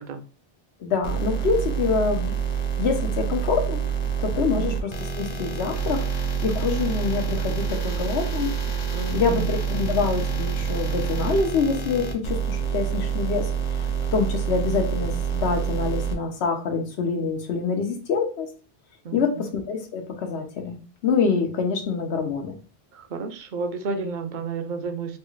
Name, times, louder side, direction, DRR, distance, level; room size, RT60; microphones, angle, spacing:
voice 1, 0.8-2.3 2.8-3.8 4.2-6.1 6.4-8.5 9.1-18.5 19.1-20.8 21.0-22.5, left 5 dB, 80° left, 4 dB, 1.0 m, -26 dB
sound 1, 1.0-16.1, right 7 dB, 45° left, 0.6 m, -27 dB
voice 2, 8.9-9.5 19.0-19.2 22.9-25.2, right 4 dB, 55° right, 7 dB, 0.6 m, -31 dB
3.2 x 2.4 x 3.0 m, 0.37 s
omnidirectional pair, 1.1 m